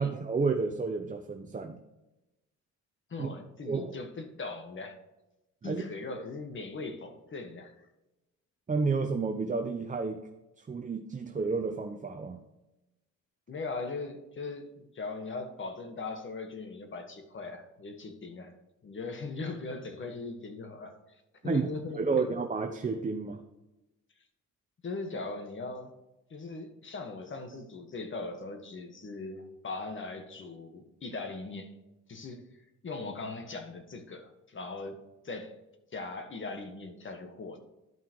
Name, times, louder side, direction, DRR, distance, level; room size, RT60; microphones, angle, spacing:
voice 1, 0.0-1.8 3.2-3.3 3.7-4.0 5.6-5.8 8.7-10.2 10.7-12.4 21.4-21.7 21.9-23.4, right 4 dB, 25° right, 4 dB, 0.8 m, -31 dB
voice 2, 3.1-5.0 5.6-7.9 13.5-18.5 18.8-22.2 24.8-25.9 26.3-31.7 32.1-35.6 35.9-37.6, left 3 dB, 40° left, 6 dB, 1.6 m, -40 dB
12.0 x 5.6 x 3.1 m, 1.0 s
cardioid pair, 90°, 30 cm